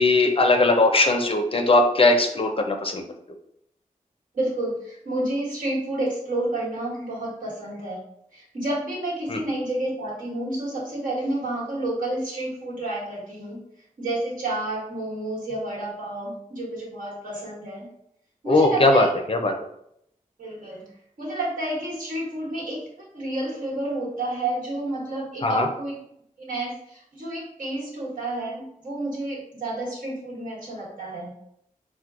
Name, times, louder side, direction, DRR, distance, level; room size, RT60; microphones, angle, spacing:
voice 1, 0.0-3.0 9.3-9.4 18.5-19.5 25.4-25.7, left 2 dB, 40° left, 5 dB, 0.4 m, -19 dB
voice 2, 4.3-8.0 8.3-13.6 14.0-17.9 18.4-19.1 20.4-20.9 21.2-26.0 26.4-31.3, right 1 dB, 70° right, -5 dB, 1.4 m, -30 dB
4.4 x 2.1 x 2.4 m, 0.75 s
cardioid pair, 60°, 14 cm